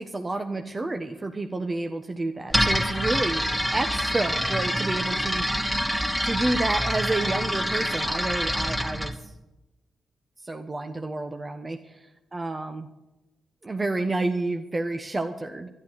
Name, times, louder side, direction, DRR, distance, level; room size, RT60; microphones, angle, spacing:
voice 1, 0.0-3.4 3.7-5.4 6.2-9.3 10.4-12.9 13.6-15.7, right 2 dB, 30° right, 6 dB, 1.2 m, -30 dB
sound 1, 2.5-9.1, equal, 15° right, 2.7 m, -26 dB
12.0 x 11.0 x 8.0 m, 1.0 s
hypercardioid pair, 40°, 0 cm